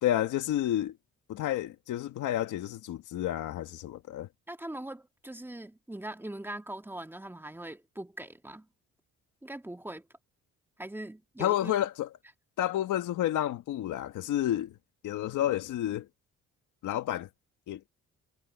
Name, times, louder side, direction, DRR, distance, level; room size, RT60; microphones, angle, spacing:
voice 1, 0.0-1.0 1.3-4.3 11.4-12.1 12.6-14.8 15.0-16.1 16.8-17.3 17.7-17.9, left 12 dB, 80° left, 1.8 m, -30 dB
voice 2, 4.5-8.7 9.4-10.1 10.8-11.7, right 1 dB, 5° right, 1.9 m, -41 dB
cardioid pair, 90°, 30 cm